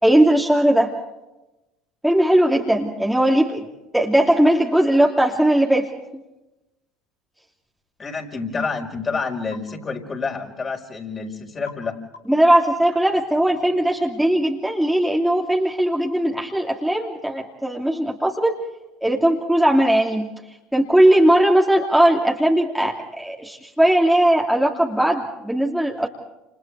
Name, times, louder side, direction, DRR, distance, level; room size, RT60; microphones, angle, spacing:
voice 1, 0.0-0.9 2.0-3.6 3.9-5.9 12.3-18.6 19.0-20.3 20.7-26.1, right 1 dB, 5° right, -1 dB, 2.9 m, -18 dB
voice 2, 8.0-12.0, left 4 dB, 30° left, 2 dB, 5.1 m, -28 dB
sound 1, 8.6-8.8 9.5-9.7 11.7-11.9 12.1-12.5, left 4 dB, 85° left, 3.9 m, -43 dB
30.0 x 29.5 x 3.5 m, 1.0 s
figure-of-eight pair, 65°, 0 cm